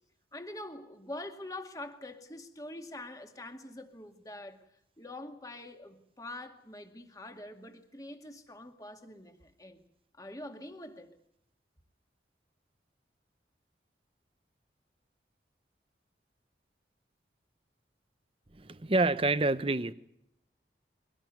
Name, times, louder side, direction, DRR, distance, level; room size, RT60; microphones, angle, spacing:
voice 1, 0.3-4.7 5.0-9.8 10.1-11.1, left 1 dB, 20° left, 2.2 m, -45 dB
voice 2, 18.5-19.9, right 2 dB, 30° right, 0.8 m, -27 dB
24.0 x 18.0 x 9.3 m
head